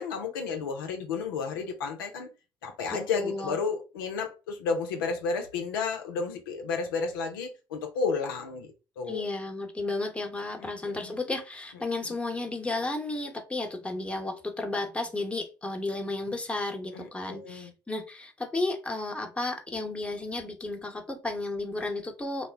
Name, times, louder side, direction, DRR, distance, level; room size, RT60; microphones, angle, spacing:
voice 1, 0.0-2.3 2.6-9.2 10.6-11.2 16.9-17.7, left 5 dB, 75° left, 0.5 m, -32 dB
voice 2, 2.9-3.6 9.1-22.5, left 2 dB, 10° left, 0.9 m, -33 dB
2.4 x 2.1 x 3.3 m
figure-of-eight pair, 50°, 11 cm